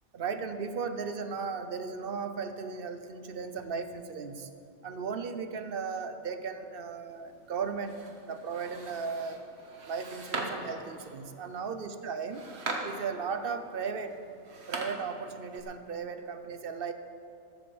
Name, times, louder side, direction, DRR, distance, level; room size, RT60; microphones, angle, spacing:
voice 1, 0.1-4.5 4.8-9.5 9.9-12.5 12.8-14.1 14.7-16.9, right 5 dB, 60° right, 9 dB, 1.0 m, -36 dB
sound 1, 7.1-15.6, right 2 dB, 85° right, 1.6 m, -42 dB
14.5 x 8.0 x 7.1 m, 2.7 s
omnidirectional pair, 1.1 m